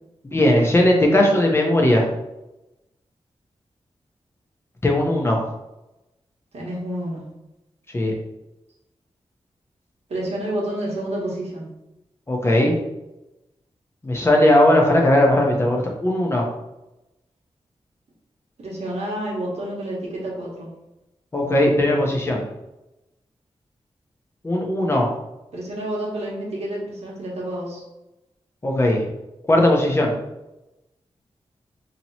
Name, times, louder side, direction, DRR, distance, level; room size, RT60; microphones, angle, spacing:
voice 1, 0.2-2.0 4.8-5.4 7.9-8.1 12.3-12.7 14.0-16.5 21.3-22.4 24.4-25.1 28.6-29.1 29.5-30.1, left 1 dB, 25° left, 0 dB, 0.8 m, -18 dB
voice 2, 6.5-7.2 10.1-11.7 18.6-20.7 25.5-27.8, right 1 dB, 70° right, -5 dB, 1.3 m, -29 dB
2.9 x 2.9 x 4.2 m, 0.95 s
wide cardioid pair, 135°, 11 cm